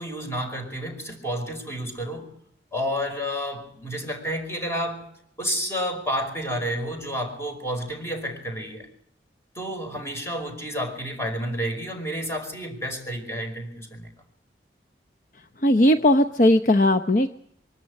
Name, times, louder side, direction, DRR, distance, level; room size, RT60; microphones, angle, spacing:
voice 1, 0.0-2.3 2.7-5.1 5.4-8.9 9.5-14.1, equal, 15° left, 4 dB, 5.2 m, -30 dB
voice 2, 15.6-17.3, left 1 dB, 50° left, 8 dB, 0.8 m, -18 dB
24.0 x 14.0 x 9.8 m, 0.68 s
head